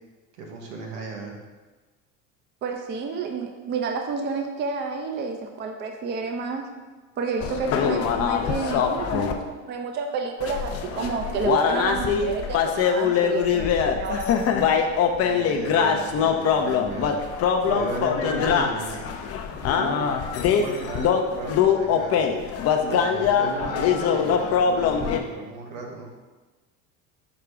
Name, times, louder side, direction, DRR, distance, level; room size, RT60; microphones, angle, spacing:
voice 1, 0.3-1.4 15.2-19.1 19.6-20.1 20.4-22.4 22.9-26.1, right 3 dB, 75° right, 0 dB, 1.1 m, -35 dB
voice 2, 2.6-6.6 7.2-14.7, right 4 dB, 30° right, 4 dB, 0.5 m, -30 dB
sound 1, 7.4-9.3 10.4-25.2, left 7 dB, 40° left, 0.5 m, -23 dB
4.9 x 2.2 x 4.8 m, 1.2 s
hypercardioid pair, 85°, 37 cm